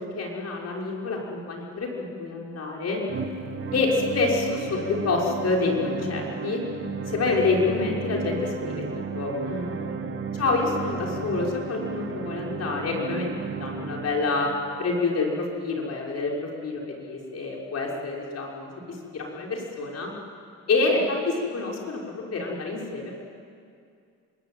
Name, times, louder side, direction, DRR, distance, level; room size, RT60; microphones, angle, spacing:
voice 1, 0.0-3.0 3.7-6.6 7.1-10.0 10.3-13.3 13.6-14.5 14.8-20.1 20.7-23.1, left 3 dB, 55° left, -2 dB, 6.0 m, -27 dB
sound 1, 3.1-15.1, right 5 dB, 40° right, 1.7 m, -34 dB
25.5 x 20.5 x 9.2 m, 2.4 s
cardioid pair, 90°, 30 cm